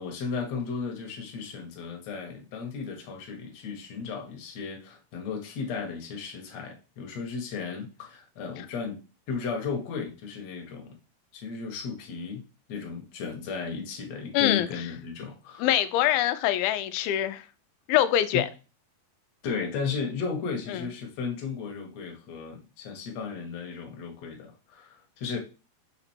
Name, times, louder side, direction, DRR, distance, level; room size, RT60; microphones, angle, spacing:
voice 1, 0.0-9.0 9.3-10.9 11.3-12.4 12.7-15.7 18.3-18.5 19.4-25.4, left 5 dB, 60° left, 2.1 m, -35 dB
voice 2, 14.3-14.7 15.6-17.4 17.9-18.5 20.7-20.8, left 12 dB, 90° left, 2.5 m, -24 dB
5.9 x 4.0 x 4.4 m
omnidirectional pair, 4.2 m